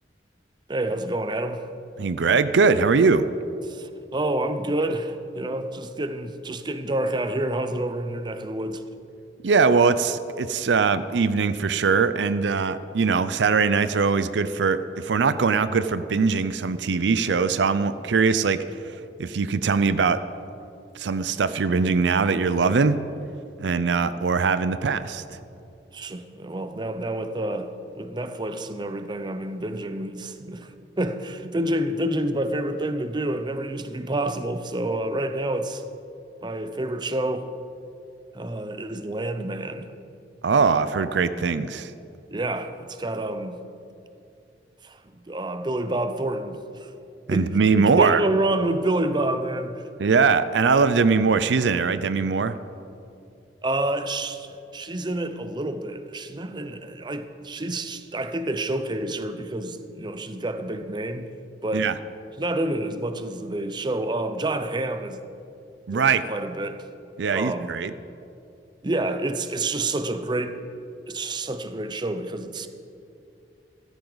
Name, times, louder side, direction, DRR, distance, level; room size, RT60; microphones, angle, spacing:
voice 1, 0.7-1.7 3.7-8.8 25.9-30.7 31.0-35.8 36.4-37.5 38.3-39.9 42.3-43.6 44.8-45.0 45.3-46.9 47.3-47.5 47.8-49.8 53.6-54.5 54.7-61.3 61.6-61.9 62.4-65.2 65.9-66.8 67.3-67.7 68.8-70.6 71.1-72.7, right 1 dB, 25° right, 0.6 m, -28 dB
voice 2, 2.0-3.3 9.4-18.6 19.2-20.2 20.9-23.0 23.6-25.2 40.4-41.9 47.3-48.2 50.0-52.6 61.7-61.9 65.9-66.2 67.2-67.9, right 5 dB, 80° right, 0.5 m, -21 dB
15.0 x 13.5 x 4.0 m
head